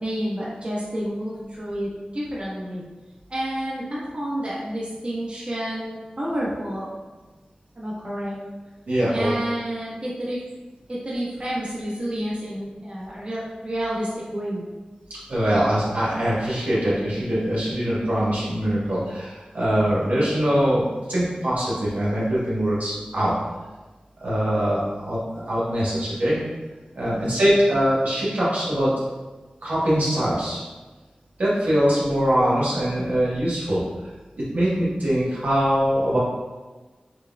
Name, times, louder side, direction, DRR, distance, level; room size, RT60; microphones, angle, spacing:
voice 1, 0.0-2.8 3.3-6.9 7.8-8.4 9.1-10.4 10.9-14.7 27.0-27.4, right 1 dB, 40° right, -8 dB, 1.2 m, -29 dB
voice 2, 8.9-9.3 15.3-23.3 24.2-26.4 26.9-29.0 29.6-30.6 31.4-33.8 34.5-36.2, equal, 85° right, -9 dB, 1.4 m, -22 dB
6.5 x 2.4 x 2.3 m, 1.2 s
wide cardioid pair, 75°, 3 cm